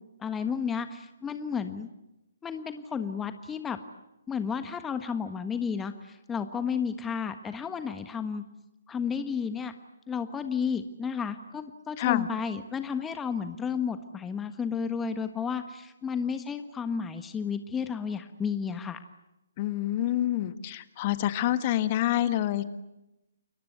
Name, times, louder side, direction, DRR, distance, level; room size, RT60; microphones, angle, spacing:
voice 1, 0.2-1.9 2.4-3.8 4.3-8.4 8.9-9.7 10.1-19.0, left 6 dB, 10° left, 9 dB, 1.4 m, -32 dB
voice 2, 12.0-12.3 19.6-22.6, left 13 dB, 35° left, 12 dB, 1.6 m, -27 dB
29.5 x 22.5 x 8.1 m, 0.93 s
hypercardioid pair, 140°, 0 cm